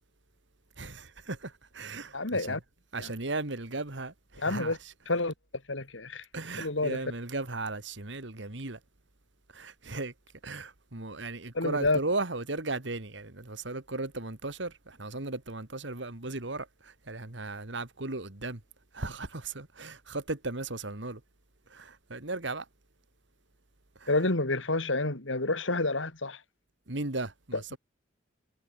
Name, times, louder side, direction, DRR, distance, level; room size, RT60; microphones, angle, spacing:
voice 1, 0.8-2.6 2.9-4.9 6.3-8.8 9.5-10.1 10.4-18.6 18.9-21.2 21.7-22.7 24.0-24.1 26.9-27.8, right 2 dB, 65° right, 2.3 m, -36 dB
voice 2, 2.1-2.6 3.0-3.1 4.4-4.8 5.1-5.3 5.7-6.2 6.6-7.0 11.5-12.0 24.1-26.4, left 2 dB, 80° left, 3.1 m, -29 dB
head